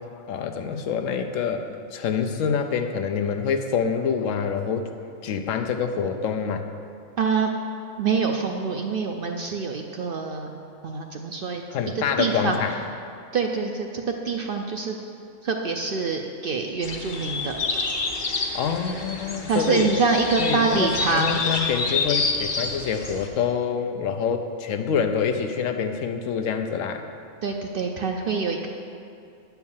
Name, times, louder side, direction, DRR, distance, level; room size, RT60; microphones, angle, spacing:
voice 1, 0.3-4.9 5.2-6.7 11.7-12.7 18.5-19.9 20.4-27.0, left 6 dB, 80° left, 6 dB, 1.0 m, -26 dB
voice 2, 7.2-7.5 8.0-10.5 10.8-11.6 12.2-12.6 13.3-15.0 15.4-17.6 17.8-17.9 19.5-21.4 27.4-28.7, right 4 dB, 60° right, 3 dB, 0.6 m, -25 dB
sound 1, 16.8-23.3, left 4 dB, 45° left, 0.9 m, -28 dB
9.5 x 4.6 x 7.2 m, 2.5 s
omnidirectional pair, 1.4 m